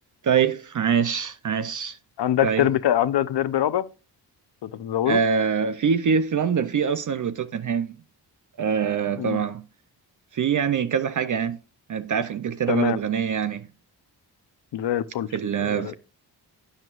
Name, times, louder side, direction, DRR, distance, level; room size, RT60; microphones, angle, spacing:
voice 1, 0.2-2.0 2.4-2.7 5.1-7.9 8.6-9.6 10.3-11.6 11.9-13.7 15.3-15.9, right 7 dB, 50° right, 0.6 m, -24 dB
voice 2, 2.2-3.9 4.6-5.2 9.2-9.4 12.7-13.0 14.7-15.3 15.6-15.9, left 11 dB, 80° left, 0.8 m, -24 dB
12.5 x 8.9 x 2.5 m
wide cardioid pair, 110°, 40 cm